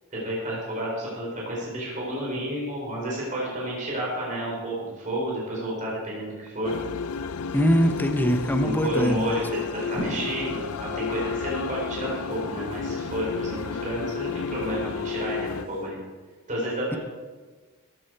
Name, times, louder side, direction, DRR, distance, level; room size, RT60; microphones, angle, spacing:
voice 1, 0.1-6.7 8.6-9.4 9.7-16.0 16.5-17.0, equal, 35° right, -4 dB, 4.2 m, -31 dB
sound 1, 6.6-15.6, left 6 dB, 85° left, 0.5 m, -32 dB
voice 2, 7.5-9.2, equal, 10° left, 5 dB, 0.9 m, -22 dB
sound 2, 10.0-15.8, equal, 75° right, 4.8 m, -42 dB
14.0 x 9.6 x 4.7 m, 1.4 s
head